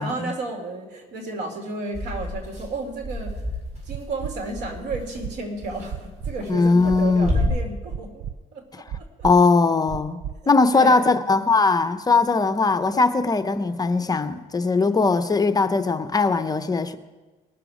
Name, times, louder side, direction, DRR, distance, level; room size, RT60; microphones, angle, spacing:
voice 1, 0.0-3.4 3.9-8.2 8.5-9.1 10.7-11.1 12.3-12.5 14.8-15.0, right 2 dB, 80° right, 3 dB, 2.5 m, -33 dB
sound 1, 1.9-7.5, left 1 dB, 40° right, 4.6 m, -30 dB
sound 2, 3.9-4.3 4.9-5.3 5.9-6.3 6.9-7.3 7.9-8.3 8.9-9.3 9.9-10.3 10.9-11.0, right 9 dB, 60° right, 0.4 m, -32 dB
voice 2, 6.5-7.3 9.2-10.2 10.5-17.0, left 4 dB, 20° left, 10 dB, 0.7 m, -20 dB
19.5 x 6.9 x 5.0 m, 1.2 s
cardioid pair, 110°, 17 cm